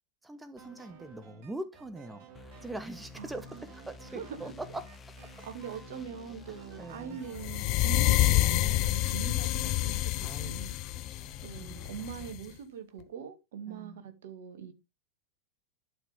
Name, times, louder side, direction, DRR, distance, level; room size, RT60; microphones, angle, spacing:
voice 1, 0.2-4.8 6.5-7.2 10.2-12.1 13.7-14.0, right 2 dB, 10° right, 0.8 m, -43 dB
sound 1, 0.6-7.5, right 7 dB, 40° right, 3.2 m, -54 dB
sound 2, 2.3-12.3, left 5 dB, 20° left, 1.1 m, -51 dB
voice 2, 4.1-4.5 5.3-10.7 11.4-14.7, right 7 dB, 55° right, 1.9 m, -42 dB
sound 3, 7.4-12.4, left 17 dB, 40° left, 0.5 m, -28 dB
11.5 x 6.0 x 3.5 m
figure-of-eight pair, 90°, 0 cm